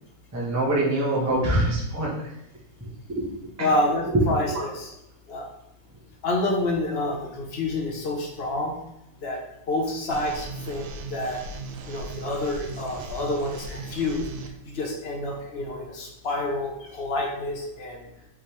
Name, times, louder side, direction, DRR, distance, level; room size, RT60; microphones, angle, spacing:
voice 1, 0.3-2.1 3.1-3.2 3.6-3.7 4.1-4.2 4.5-4.7, right 1 dB, 15° right, -5 dB, 0.7 m, -24 dB
voice 2, 3.6-4.9 5.3-5.4 6.2-8.8 9.2-9.4 9.7-11.4 11.9-14.3 14.6-18.0, left 2 dB, 70° left, 0 dB, 0.5 m, -28 dB
sound 1, 10.1-14.5, right 3 dB, 80° right, 1.3 m, -37 dB
5.0 x 3.4 x 3.1 m, 0.87 s
omnidirectional pair, 2.1 m